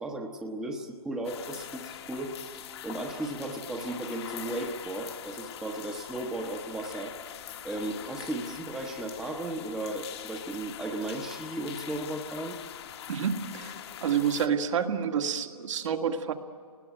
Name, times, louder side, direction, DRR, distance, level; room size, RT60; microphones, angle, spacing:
voice 1, 0.0-7.1 7.6-12.6, right 1 dB, 5° right, 1 dB, 1.0 m, -35 dB
sound 1, 1.2-14.5, left 10 dB, 45° left, 1.4 m, -43 dB
voice 2, 13.1-16.3, right 7 dB, 55° right, 4 dB, 1.9 m, -29 dB
30.0 x 20.5 x 9.2 m, 2.2 s
hypercardioid pair, 155°, 19 cm